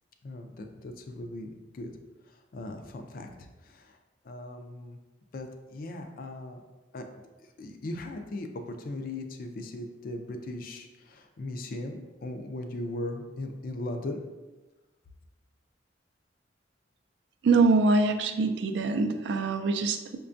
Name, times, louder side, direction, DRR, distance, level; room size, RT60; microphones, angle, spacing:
voice 1, 0.2-1.9 2.5-3.3 3.6-4.0 4.2-5.0 5.3-6.6 6.9-7.1 7.6-14.2, left 2 dB, 50° left, 5 dB, 0.4 m, -38 dB
voice 2, 17.4-20.2, right 3 dB, 65° right, 7 dB, 0.3 m, -24 dB
5.7 x 2.2 x 2.5 m, 1.2 s
head